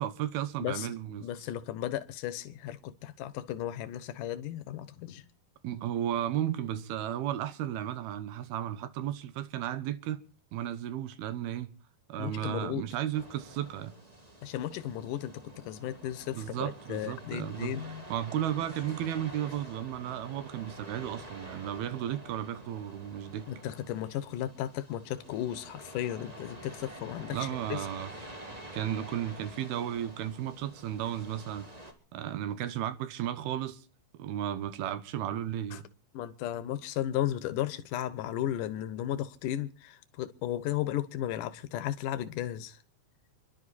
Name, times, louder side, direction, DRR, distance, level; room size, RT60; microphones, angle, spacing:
voice 1, 0.0-1.3 5.6-10.2 10.5-11.7 12.1-13.9 16.3-23.5 27.3-28.1 28.7-31.7 32.1-33.8 34.1-35.8, right 11 dB, 80° right, 2.9 m, -34 dB
voice 2, 1.2-5.2 12.2-12.9 14.4-18.0 23.5-27.9 35.7-35.8 36.1-42.8, left 12 dB, 70° left, 2.3 m, -35 dB
sound 1, 13.1-31.9, right 1 dB, 20° right, 1.0 m, -48 dB
29.0 x 11.5 x 4.2 m
omnidirectional pair, 4.5 m